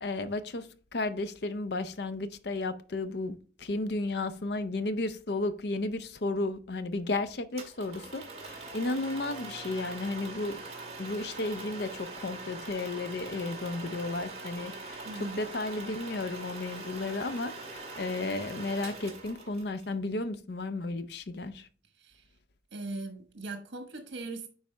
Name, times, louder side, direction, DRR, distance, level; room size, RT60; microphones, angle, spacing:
voice 1, 0.0-10.6 11.0-21.7, left 2 dB, 60° left, 0.6 m, -33 dB
sound 1, 7.6-19.9, right 3 dB, 35° right, 1.8 m, -43 dB
voice 2, 15.0-15.4 22.0-22.2 22.7-24.5, right 2 dB, 85° right, 1.2 m, -39 dB
9.5 x 4.1 x 3.3 m
head